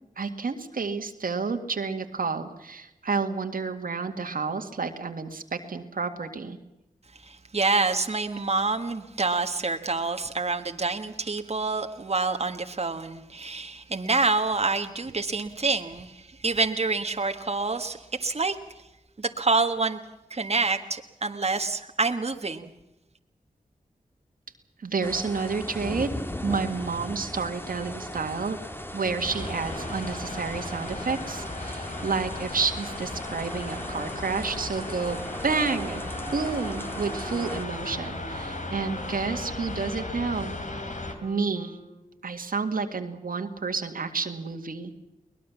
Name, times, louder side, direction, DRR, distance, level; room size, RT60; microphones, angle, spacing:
voice 1, 0.2-6.6 24.8-26.1 26.4-28.6 28.9-36.0 36.3-40.5 41.2-41.8 42.2-44.9, right 4 dB, 85° right, 5 dB, 2.1 m, -30 dB
voice 2, 7.2-18.6 19.2-20.0 20.3-22.7, right 3 dB, 45° right, 5 dB, 1.5 m, -27 dB
sound 1, 25.0-37.6, left 1 dB, 15° left, 1.9 m, -37 dB
sound 2, 29.3-41.1, left 2 dB, 60° left, 3.5 m, -37 dB
Wind instrument woodwind instrument, 33.3-42.3, left 1 dB, 80° left, 7.9 m, -45 dB
23.0 x 19.5 x 7.2 m, 0.93 s
cardioid pair, 55°, 14 cm